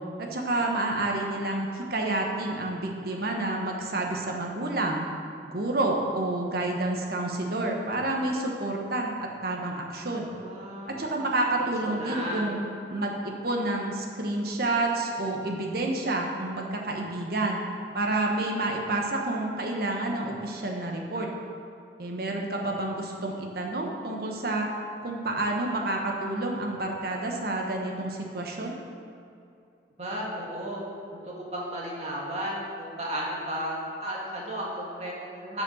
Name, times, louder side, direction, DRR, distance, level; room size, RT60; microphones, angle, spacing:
voice 1, 0.2-5.0 5.5-10.3 11.0-12.6 12.9-17.6 17.9-21.3 22.0-24.7 25.0-28.8, right 2 dB, 55° right, 1 dB, 1.1 m, -29 dB
voice 2, 10.3-11.1 11.9-12.5 30.0-30.8 31.3-35.6, equal, 35° right, -4 dB, 1.8 m, -34 dB
7.1 x 6.9 x 6.3 m, 2.6 s
head